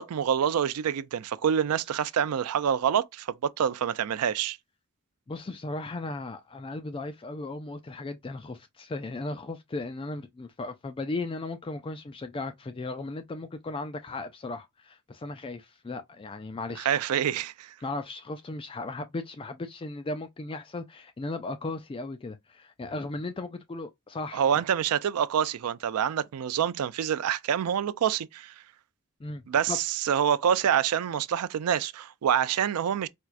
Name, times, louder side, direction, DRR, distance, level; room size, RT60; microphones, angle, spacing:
voice 1, 0.0-4.6 16.7-17.7 24.3-28.5 29.5-33.1, right 8 dB, 90° right, 0.4 m, -26 dB
voice 2, 5.3-17.0 17.8-24.6 29.2-29.8, left 2 dB, 25° left, 0.4 m, -36 dB
4.4 x 2.3 x 2.4 m
head